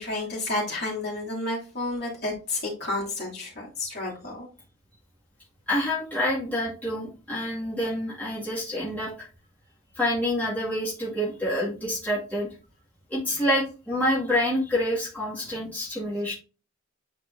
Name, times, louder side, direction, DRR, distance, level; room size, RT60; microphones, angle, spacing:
voice 1, 0.0-4.5 13.3-13.5 15.4-15.6, left 2 dB, 50° left, -4 dB, 2.8 m, -31 dB
voice 2, 5.7-9.3 10.0-12.5 13.1-16.3, left 1 dB, 10° left, -8 dB, 2.1 m, -27 dB
9.5 x 4.4 x 2.7 m, 0.35 s
head